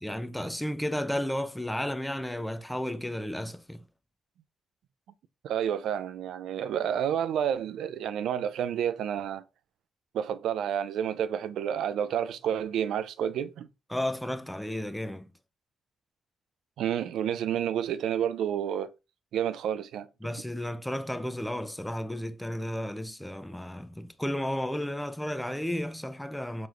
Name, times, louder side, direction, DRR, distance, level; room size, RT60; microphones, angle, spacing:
voice 1, 0.0-3.8 13.9-15.3 20.2-26.7, left 1 dB, 5° left, 0.4 m, -33 dB
voice 2, 5.4-9.4 10.1-13.7 16.8-18.9 19.3-20.1, right 9 dB, 75° right, 0.3 m, -30 dB
4.7 x 3.0 x 2.4 m
cardioid pair, 90°, 0 cm